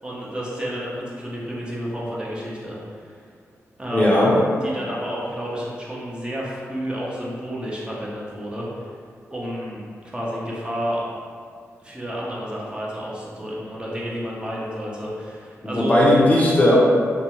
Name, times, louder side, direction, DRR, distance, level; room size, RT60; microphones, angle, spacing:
voice 1, 0.0-3.2 3.8-4.4 4.6-8.9 9.3-11.0 11.8-16.0, equal, 15° right, -6 dB, 0.6 m, -31 dB
voice 2, 3.9-4.3 15.7-16.8, left 1 dB, 25° left, -5 dB, 0.5 m, -16 dB
2.5 x 2.1 x 2.9 m, 2.2 s
cardioid pair, 75°, 6 cm